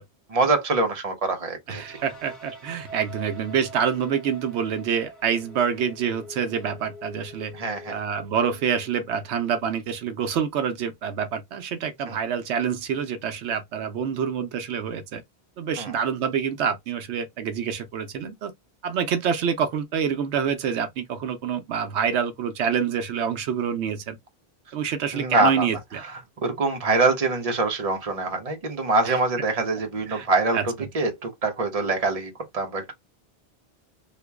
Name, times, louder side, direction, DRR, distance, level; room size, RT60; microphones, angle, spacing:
voice 1, 0.3-1.8 7.5-8.0 12.1-12.2 15.8-15.9 25.1-25.7 26.0-32.9, right 3 dB, 35° right, 0.9 m, -24 dB
sound 1, 1.7-9.4, right 1 dB, ahead, 1.5 m, -45 dB
voice 2, 1.7-7.5 7.9-15.2 15.6-18.5 18.8-24.2 24.7-26.0 29.0-29.2 30.1-30.3 30.5-30.6, right 7 dB, 90° right, 0.9 m, -27 dB
2.9 x 2.5 x 3.4 m
omnidirectional pair, 1.1 m